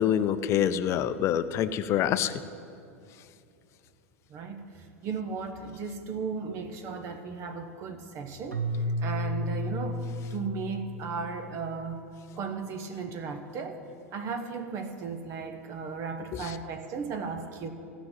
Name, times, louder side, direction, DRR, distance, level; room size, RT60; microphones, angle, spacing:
voice 1, 0.0-2.3, left 10 dB, 35° left, 13 dB, 0.6 m, -26 dB
voice 2, 4.3-8.6 9.0-10.0 10.3-12.0 12.4-13.8 14.1-17.7, right 5 dB, 40° right, 7 dB, 1.0 m, -35 dB
Keyboard (musical), 8.5-11.6, left 1 dB, 85° right, 0.8 m, -33 dB
16.0 x 6.2 x 9.5 m, 2.5 s
figure-of-eight pair, 85°, 8 cm